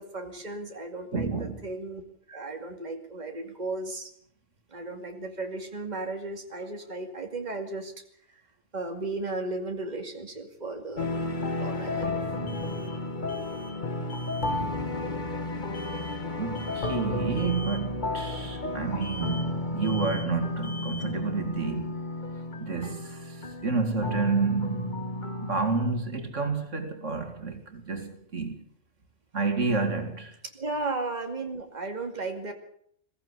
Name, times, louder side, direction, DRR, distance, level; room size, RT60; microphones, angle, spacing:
voice 1, 0.0-2.0 2.3-4.1 4.7-7.9 8.3-8.4 8.7-11.1 11.6-12.2 30.4-32.5, right 2 dB, 35° right, 2.6 m, -35 dB
voice 2, 1.1-1.6 12.3-12.7 14.5-14.7 16.4-21.9 22.6-24.9 25.5-28.6 29.3-30.3, right 4 dB, 80° right, 2.7 m, -30 dB
sound 1, 9.2-9.3 12.5-13.0 13.3-13.8 14.1-14.6 15.7-16.2 16.5-17.0 17.4-17.9 19.0-19.6 19.8-20.4 20.6-21.2, left 1 dB, 70° left, 2.6 m, -44 dB
sound 2, 11.0-25.6, left 2 dB, 40° left, 1.7 m, -32 dB
21.5 x 15.5 x 8.2 m
omnidirectional pair, 1.3 m